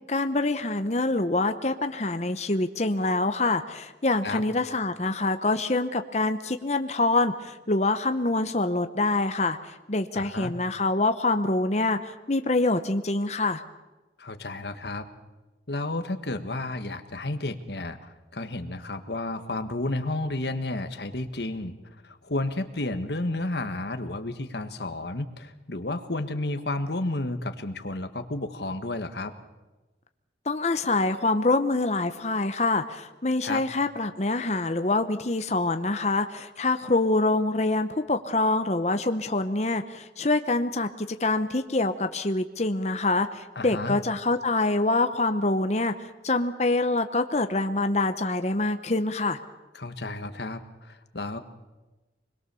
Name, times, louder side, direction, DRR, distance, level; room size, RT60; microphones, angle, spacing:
voice 1, 0.1-13.6 30.5-45.9 46.2-49.4, left 2 dB, 40° left, 8 dB, 0.9 m, -25 dB
voice 2, 10.1-10.5 14.2-15.1 15.7-21.7 22.0-29.3 33.4-33.6 43.5-44.0 49.7-51.4, left 2 dB, 65° left, 8 dB, 1.6 m, -32 dB
25.5 x 21.5 x 7.0 m, 1.1 s
head